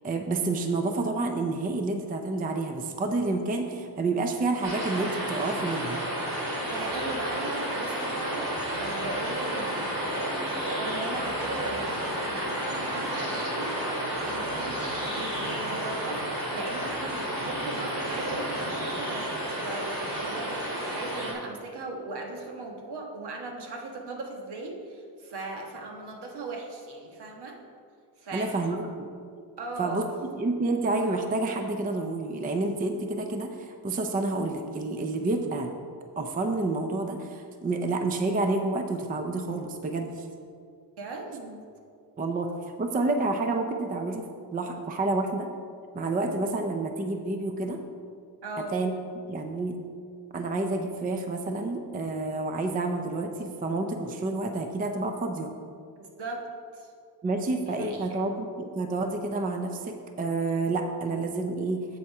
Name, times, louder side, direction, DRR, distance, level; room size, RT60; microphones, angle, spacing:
voice 1, 0.0-6.0 28.3-29.1 29.8-30.0 30.3-35.7 36.2-40.3 42.2-44.2 44.5-45.5 45.9-47.8 48.7-48.9 49.3-49.8 50.3-55.5 57.2-61.8, right 2 dB, 20° right, 5 dB, 0.4 m, -29 dB
sound 1, 4.6-21.3, right 1 dB, 50° right, 2.3 m, -31 dB
voice 2, 6.7-27.6 28.2-28.8 29.6-30.1 41.0-41.6 48.4-48.8 56.0-56.4 56.7-56.9 57.4-58.2, right 2 dB, 70° right, 1 dB, 1.4 m, -38 dB
7.7 x 6.9 x 4.8 m, 2.3 s
wide cardioid pair, 155°, 42 cm